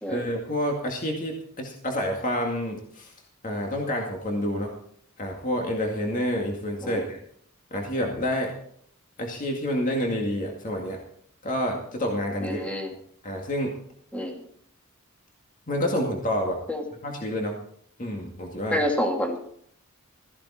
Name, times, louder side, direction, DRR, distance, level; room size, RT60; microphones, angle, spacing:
voice 1, 0.1-3.1 3.4-4.7 5.2-7.2 7.7-8.5 9.2-11.0 11.4-12.6 13.2-13.8 15.7-16.6 17.0-17.6 18.0-18.8, equal, 35° left, 1 dB, 2.2 m, -28 dB
voice 2, 12.4-12.9 14.1-14.4 16.7-16.8 18.7-19.4, equal, 5° left, 2 dB, 2.2 m, -27 dB
16.0 x 14.5 x 4.3 m, 0.64 s
head